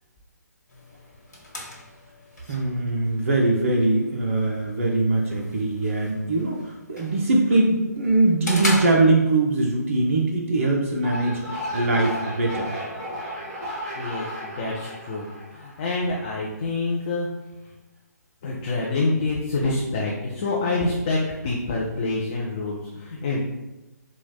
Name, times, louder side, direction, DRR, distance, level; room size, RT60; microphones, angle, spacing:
sound 1, 0.7-9.7, left 1 dB, 75° left, 1.0 m, -37 dB
voice 1, 2.5-12.7, right 2 dB, 45° right, -1 dB, 0.4 m, -22 dB
sound 2, 10.9-16.2, equal, 20° right, 1.2 m, -34 dB
voice 2, 13.9-17.3 18.4-23.4, left 3 dB, 25° left, -3 dB, 0.3 m, -27 dB
3.9 x 2.1 x 2.2 m, 1.0 s
figure-of-eight pair, 135°, 10 cm